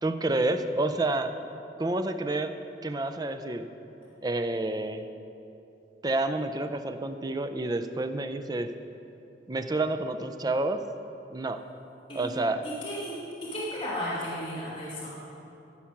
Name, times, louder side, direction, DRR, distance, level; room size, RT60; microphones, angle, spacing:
voice 1, 0.0-1.3 1.8-2.5 2.8-3.7 4.2-5.1 6.0-8.7 9.5-10.8 11.3-11.6 12.1-12.6, right 2 dB, 20° right, 8 dB, 0.4 m, -29 dB
voice 2, 12.1-15.2, equal, 30° left, -9 dB, 2.1 m, -35 dB
15.0 x 5.7 x 5.9 m, 2.8 s
head